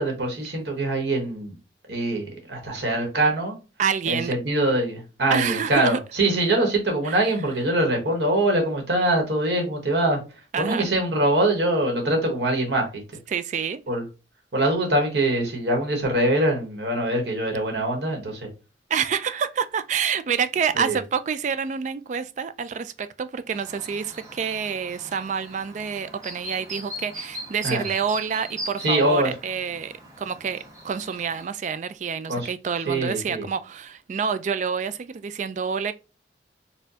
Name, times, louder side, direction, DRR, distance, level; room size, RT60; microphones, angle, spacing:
voice 1, 0.0-1.6 1.9-3.6 4.1-10.2 10.6-13.0 13.9-14.0 14.5-18.5 20.8-21.0 27.6-27.8 28.8-29.3 32.3-32.5 32.9-33.4, right 1 dB, 75° right, 1.3 m, -23 dB
voice 2, 3.8-4.3 5.3-6.0 7.0-7.2 10.5-10.9 13.3-13.8 18.9-35.9, right 6 dB, 45° right, 0.3 m, -27 dB
Chirp tweet, 23.5-31.5, right 1 dB, 20° right, 0.9 m, -40 dB
4.3 x 2.2 x 2.6 m
head